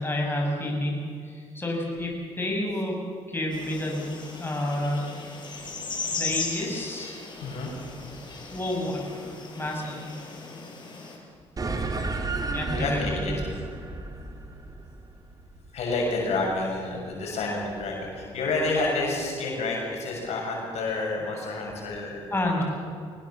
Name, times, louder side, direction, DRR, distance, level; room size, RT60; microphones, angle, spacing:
voice 1, 0.0-3.0 3.3-4.0 4.4-5.1 6.2-7.2 8.5-9.1 9.6-10.0 12.5-13.4 22.3-22.6, left 1 dB, 20° left, 0 dB, 6.2 m, -29 dB
sound 1, 3.5-11.2, left 4 dB, 40° left, 6.1 m, -37 dB
voice 2, 7.4-7.7 12.7-13.4 15.7-22.2, left 3 dB, 75° left, -1 dB, 6.7 m, -29 dB
sound 2, 11.6-16.3, right 3 dB, 35° right, 2.8 m, -32 dB
22.5 x 19.0 x 7.3 m, 2.2 s
supercardioid pair, 70°, 11 cm